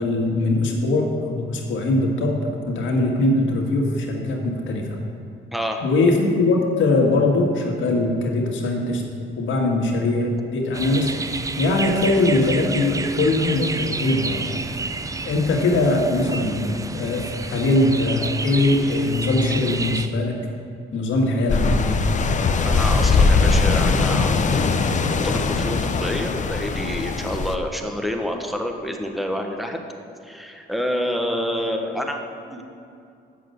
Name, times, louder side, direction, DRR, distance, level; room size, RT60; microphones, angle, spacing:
voice 1, 0.0-4.9 5.8-9.0 9.4-14.6 15.3-20.4 20.9-22.2, left 2 dB, 75° left, 0 dB, 1.7 m, -21 dB
sound 1, 10.7-20.1, right 3 dB, 15° right, 0.4 m, -30 dB
sound 2, 21.5-27.6, left 4 dB, 40° left, 0.7 m, -20 dB
voice 2, 22.6-24.9 25.2-29.8 30.2-32.2 32.5-32.6, equal, ahead, 3 dB, 1.2 m, -28 dB
8.2 x 6.6 x 7.9 m, 2.5 s
cardioid pair, 90°, 20 cm